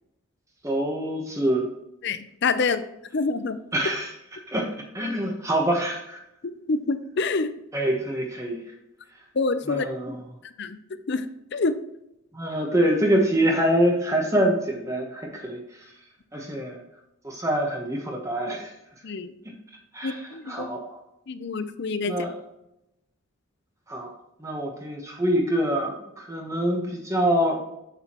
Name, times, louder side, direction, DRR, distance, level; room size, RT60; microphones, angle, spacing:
voice 1, 0.6-1.7 3.7-4.1 4.5-4.7 4.9-6.2 7.7-8.6 9.7-10.2 12.3-15.6 16.3-16.8 17.2-18.7 19.4-19.5 19.9-20.2 20.5-21.0 22.1-22.3 23.9-24.1 24.4-27.5, right 1 dB, 15° right, 0 dB, 1.0 m, -25 dB
voice 2, 2.0-2.8 3.1-3.6 6.7-7.5 9.3-9.9 10.4-10.8 11.1-11.3 11.5-11.8 19.0-19.3 20.0-20.7 21.3-22.2, left 3 dB, 50° left, 11 dB, 0.5 m, -26 dB
7.8 x 6.9 x 3.0 m, 0.84 s
head